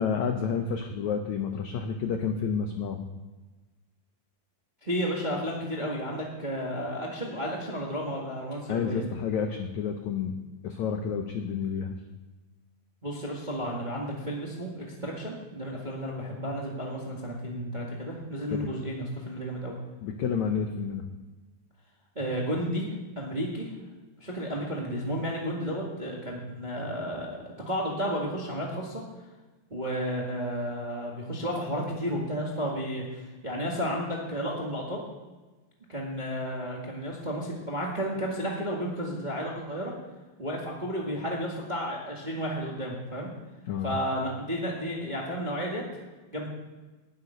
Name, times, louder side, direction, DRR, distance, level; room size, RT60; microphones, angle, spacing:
voice 1, 0.0-3.1 8.7-10.3 10.6-11.9 18.5-18.7 20.0-21.1 43.7-43.9, left 6 dB, 85° left, 6 dB, 1.6 m, -30 dB
voice 2, 4.8-9.0 13.0-19.8 22.1-23.7 24.2-29.0 29.7-35.0 35.9-39.9 40.4-43.3 43.8-45.8 46.3-46.5, equal, 25° right, -2 dB, 1.0 m, -32 dB
11.5 x 6.7 x 9.5 m, 1.2 s
omnidirectional pair, 4.4 m